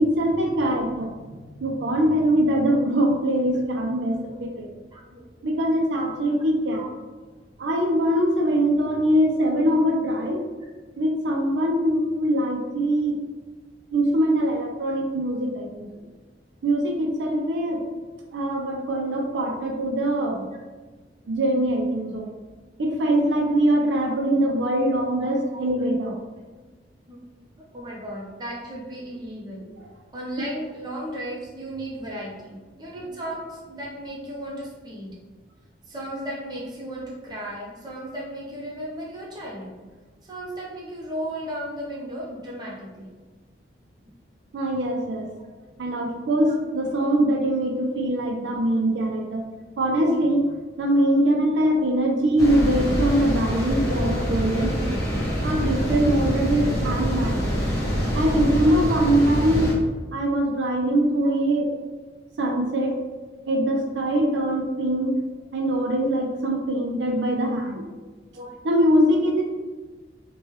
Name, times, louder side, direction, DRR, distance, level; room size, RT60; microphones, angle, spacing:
voice 1, 0.0-4.7 5.4-6.8 7.6-10.4 11.0-13.2 13.9-15.9 16.6-17.8 18.3-20.4 21.3-22.3 22.8-26.2 44.5-45.3 45.8-49.4 49.8-50.5 50.8-55.0 55.4-57.6 58.1-59.7 60.1-61.7 62.4-63.0 63.5-65.2 65.5-67.8 68.6-69.4, right 1 dB, 80° right, 1 dB, 0.4 m, -22 dB
voice 2, 4.9-5.2 6.7-6.8 8.3-8.4 8.8-8.9 25.2-25.7 27.1-27.2 27.7-29.6 30.1-35.2 35.9-39.8 40.2-43.1 48.7-48.8 61.2-61.3 68.3-68.5, right 1 dB, 25° right, -5 dB, 0.6 m, -35 dB
sound 1, 52.4-59.7, equal, 20° left, 0.8 m, -25 dB
3.1 x 2.2 x 3.0 m, 1.3 s
head